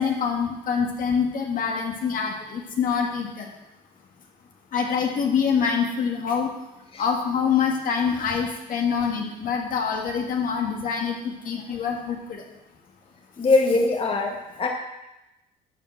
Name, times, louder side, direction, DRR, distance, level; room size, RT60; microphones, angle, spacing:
voice 1, 0.0-3.5 4.7-6.5 7.0-12.4, left 6 dB, 55° left, 1 dB, 1.7 m, -25 dB
voice 2, 13.4-14.7, left 3 dB, 35° left, 1 dB, 1.7 m, -22 dB
12.0 x 4.7 x 7.6 m, 0.94 s
cardioid pair, 110°, 17 cm